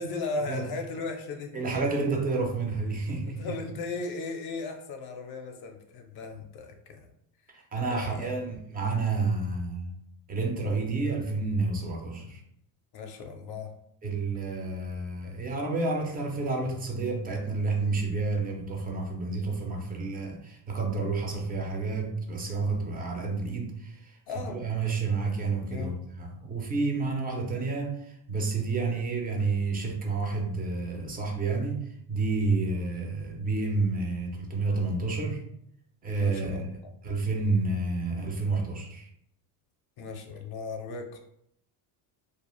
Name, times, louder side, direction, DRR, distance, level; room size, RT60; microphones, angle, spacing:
voice 1, 0.0-1.6 3.4-7.1 7.9-8.3 12.2-12.3 12.9-13.7 24.3-24.6 25.7-25.9 36.2-36.7 40.0-41.2, left 3 dB, 50° left, 4 dB, 0.5 m, -36 dB
voice 2, 1.5-3.6 7.5-9.9 10.3-12.4 14.0-35.4 36.0-36.7 37.0-39.1, right 3 dB, 20° right, 1 dB, 0.4 m, -30 dB
2.4 x 2.3 x 2.9 m, 0.74 s
cardioid pair, 120°, 49 cm